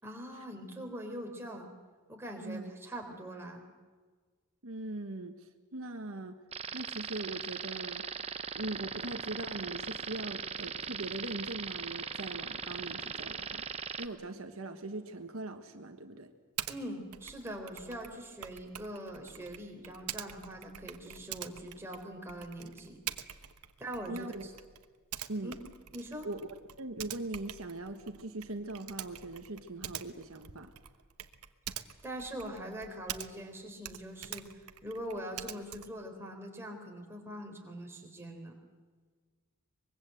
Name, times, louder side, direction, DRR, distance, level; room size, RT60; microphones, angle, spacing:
voice 1, 0.0-1.7 2.1-3.7 16.7-23.0 23.8-24.5 25.4-25.5 25.9-26.3 32.0-38.5, right 1 dB, 10° right, 1 dB, 3.8 m, -42 dB
voice 2, 2.4-2.7 4.6-6.4 6.7-8.0 8.5-13.6 14.0-16.3 24.1-24.4 25.3-25.5 26.2-26.5 26.8-30.7, right 2 dB, 65° right, 6 dB, 1.4 m, -41 dB
sound 1, 6.5-14.1, right 6 dB, 25° right, 1.0 m, -39 dB
Typing, 16.6-16.8 17.1-33.5 33.8-36.0, right 10 dB, 85° right, 1.2 m, -45 dB
24.0 x 22.0 x 7.9 m, 1.5 s
head